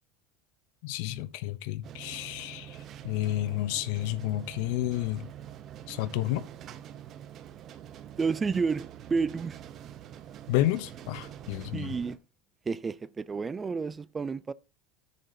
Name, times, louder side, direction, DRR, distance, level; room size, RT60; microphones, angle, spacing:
voice 1, 0.8-5.3 5.9-6.4 10.5-11.9, left 14 dB, 65° left, 0.7 m, -31 dB
sound 1, 1.8-12.2, right 10 dB, 35° right, 0.8 m, -45 dB
voice 2, 8.2-9.6 11.7-12.2 12.7-14.5, right 5 dB, 15° right, 0.3 m, -30 dB
14.5 x 6.7 x 2.7 m
supercardioid pair, 150°, 0 cm